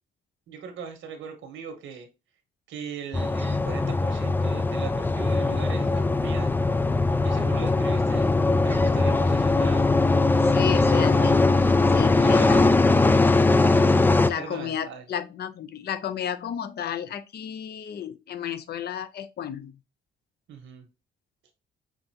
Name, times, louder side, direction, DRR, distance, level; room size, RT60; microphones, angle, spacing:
voice 1, 0.5-2.1 2.7-6.5 7.2-8.3 8.6-10.0 10.7-11.3 12.2-12.7 13.6-13.9 14.4-15.0 20.5-20.8, right 6 dB, 85° right, 1.5 m, -39 dB
sound 1, 3.1-14.3, left 3 dB, 10° left, 0.3 m, -21 dB
voice 2, 10.4-11.3 11.9-12.6 14.3-19.7, left 9 dB, 55° left, 0.6 m, -32 dB
5.8 x 2.6 x 2.9 m
cardioid pair, 90°, 20 cm